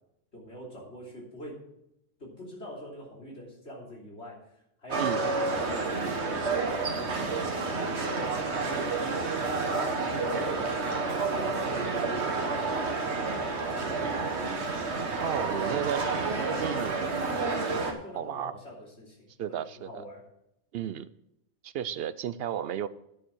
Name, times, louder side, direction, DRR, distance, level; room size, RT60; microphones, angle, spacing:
voice 1, 0.3-1.6 2.2-4.5 4.8-12.9 13.3-14.8 15.3-16.0 18.0-20.3, equal, 85° left, -3 dB, 3.5 m, -44 dB
sound 1, 4.9-17.9, right 3 dB, 85° right, 1.6 m, -30 dB
voice 2, 15.2-16.1 16.6-17.1 18.1-18.6 19.4-20.0 20.7-21.1 21.6-22.9, right 9 dB, 70° right, 16 dB, 0.7 m, -33 dB
10.0 x 7.2 x 6.3 m, 0.81 s
omnidirectional pair, 1.1 m